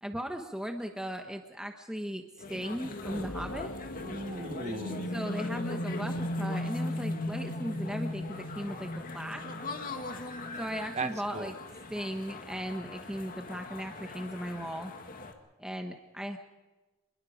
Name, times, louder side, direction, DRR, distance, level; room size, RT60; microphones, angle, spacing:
voice 1, 0.0-2.2 2.5-3.7 5.1-9.4 10.6-11.5 11.9-14.9 15.6-16.4, equal, 5° right, 4 dB, 1.2 m, -37 dB
sound 1, 2.4-15.3, left 3 dB, 45° left, 2.1 m, -42 dB
sound 2, 3.0-10.7, left 1 dB, 90° left, 1.9 m, -37 dB
voice 2, 4.0-5.1 10.9-11.5, right 3 dB, 35° right, 8 dB, 1.3 m, -37 dB
27.0 x 21.5 x 5.1 m, 1.2 s
head